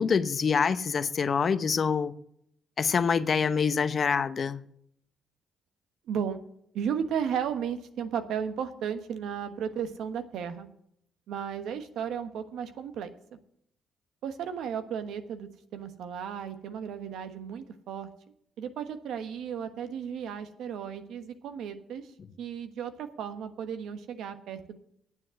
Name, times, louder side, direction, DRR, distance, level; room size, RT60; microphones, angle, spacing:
voice 1, 0.0-2.1 2.8-4.6, left 6 dB, 45° left, 0.7 m, -26 dB
voice 2, 6.1-6.4 6.7-10.7 11.3-13.4 14.2-18.1 18.6-22.1 22.4-24.8, right 8 dB, 80° right, 1.2 m, -34 dB
9.6 x 7.8 x 7.7 m
cardioid pair, 90°, 0 cm